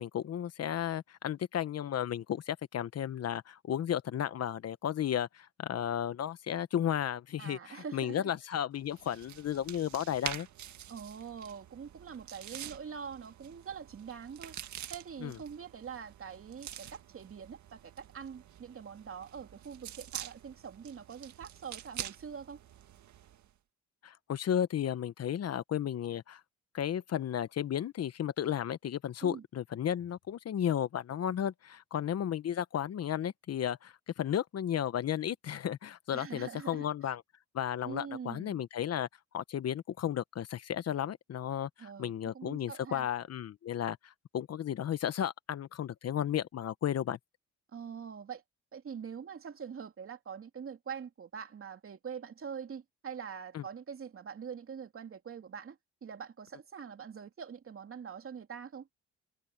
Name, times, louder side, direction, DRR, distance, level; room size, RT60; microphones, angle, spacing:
voice 1, 0.0-10.5 15.2-15.3 24.0-26.4 26.7-37.2 37.5-39.1 39.3-47.2 53.5-53.6, left 10 dB, 55° left, 1.0 m, -34 dB
voice 2, 7.4-8.2 10.9-14.6 14.9-22.6 29.2-29.4 36.1-37.1 37.8-38.6 41.8-43.1 47.7-48.4 48.7-58.9, right 7 dB, 45° right, 2.8 m, -44 dB
sound 1, 8.8-23.5, right 11 dB, 70° right, 1.9 m, -47 dB
cardioid pair, 90°, 30 cm